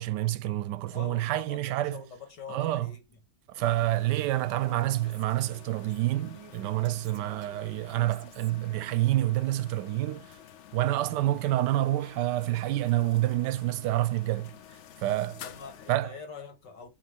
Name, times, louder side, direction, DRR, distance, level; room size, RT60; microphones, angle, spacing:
voice 1, 0.0-2.0 2.5-2.9 3.5-10.3 10.7-14.5 15.0-15.4 15.9-16.1, right 15 dB, 90° right, 1.2 m, -28 dB
voice 2, 0.9-3.2 4.3-4.6 7.7-8.0 10.8-11.1 15.4-16.9, left 5 dB, 85° left, 2.5 m, -45 dB
sound 1, 3.6-16.0, left 10 dB, 65° left, 0.7 m, -50 dB
Female speech woman speaking, 4.4-9.5, right 9 dB, 50° right, 0.8 m, -53 dB
8.8 x 3.6 x 5.2 m
omnidirectional pair, 1.8 m